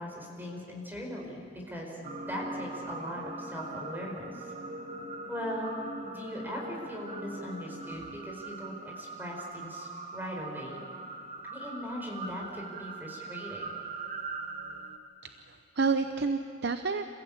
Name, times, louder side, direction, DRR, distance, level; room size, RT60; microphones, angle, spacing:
voice 1, 0.0-4.5 5.3-5.8 6.0-10.8 11.5-13.7, equal, 10° right, -1 dB, 4.8 m, -39 dB
sound 1, 2.0-15.0, right 3 dB, 35° right, 1.6 m, -41 dB
voice 2, 15.2-17.1, right 4 dB, 60° right, 8 dB, 0.7 m, -30 dB
28.5 x 15.5 x 8.8 m, 2.5 s
head